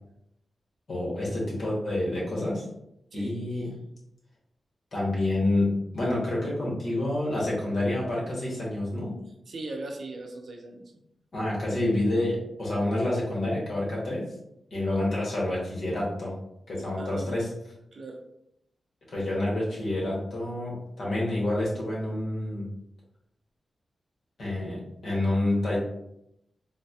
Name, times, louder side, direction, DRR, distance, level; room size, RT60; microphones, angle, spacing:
voice 1, 0.9-2.6 3.1-3.7 4.9-9.1 11.3-14.2 14.7-16.3 16.7-17.5 19.1-22.7 24.4-25.8, left 1 dB, 70° left, -5 dB, 1.3 m, -28 dB
voice 2, 9.5-10.9 17.0-17.4 17.9-18.2, right 2 dB, 65° right, 2 dB, 0.5 m, -39 dB
4.1 x 2.2 x 2.8 m, 0.80 s
wide cardioid pair, 90°, 0 cm